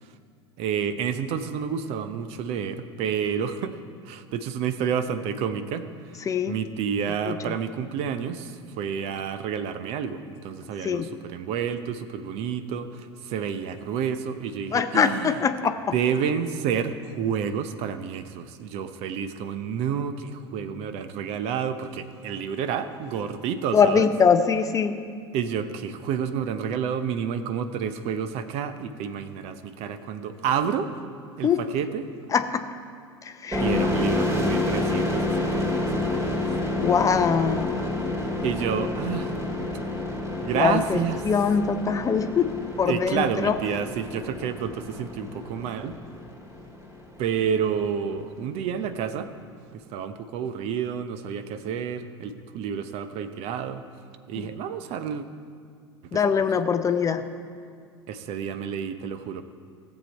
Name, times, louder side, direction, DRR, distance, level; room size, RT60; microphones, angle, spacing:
voice 1, 0.6-15.4 15.9-24.1 25.3-30.9 31.4-32.1 33.6-36.2 38.4-39.4 40.4-41.2 42.9-45.9 47.2-49.3 49.7-53.8 54.3-55.2 56.0-56.5 58.1-59.4, right 7 dB, 45° right, 11 dB, 0.7 m, -29 dB
voice 2, 14.7-15.8 23.7-25.0 31.4-31.6 32.3-32.6 33.2-33.6 36.8-37.8 40.5-43.5 54.4-54.5 56.1-57.2, left 6 dB, 25° left, 9 dB, 0.6 m, -23 dB
sound 1, 33.5-47.0, left 2 dB, 25° right, 2.5 m, -29 dB
17.0 x 7.4 x 4.5 m, 2.2 s
figure-of-eight pair, 80°, 14 cm